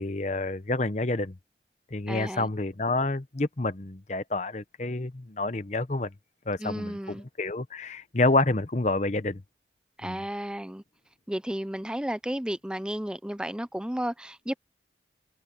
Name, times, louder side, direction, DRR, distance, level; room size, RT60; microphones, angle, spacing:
voice 1, 0.0-1.3 1.9-6.1 6.5-9.4 10.0-10.2, left 2 dB, 40° left, 0.9 m, -28 dB
voice 2, 2.1-2.5 6.6-7.2 10.0-10.8 11.3-14.6, equal, 5° right, 0.5 m, -33 dB
head